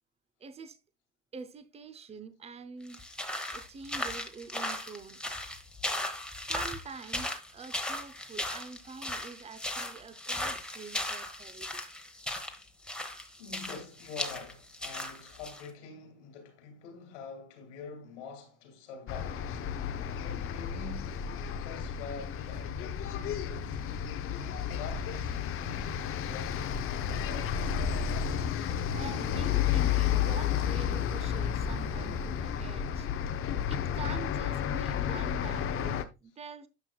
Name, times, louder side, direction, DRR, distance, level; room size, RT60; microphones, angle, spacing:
voice 1, 0.4-0.8 1.3-3.0 3.5-5.2 6.3-11.8 28.5-33.3 33.7-36.7, right 5 dB, 15° right, 0.7 m, -45 dB
sound 1, 2.9-15.7, left 1 dB, 5° left, 1.1 m, -37 dB
voice 2, 13.4-19.5 20.2-21.1 21.6-23.8 24.4-27.9, left 5 dB, 75° left, 2.5 m, -46 dB
sound 2, 19.1-36.0, left 8 dB, 35° left, 0.8 m, -32 dB
9.7 x 5.9 x 2.3 m
hypercardioid pair, 95°, 35 cm